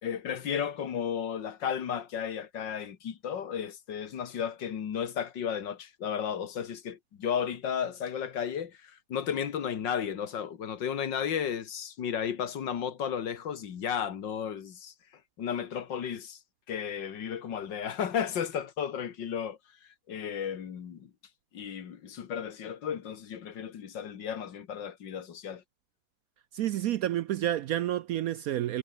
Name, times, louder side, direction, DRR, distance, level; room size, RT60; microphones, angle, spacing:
voice 1, 0.0-14.9 15.4-16.4 16.7-21.1 21.5-25.6, left 8 dB, 80° left, 2.2 m, -34 dB
voice 2, 26.5-28.8, right 12 dB, 70° right, 0.9 m, -29 dB
omnidirectional pair, 1.9 m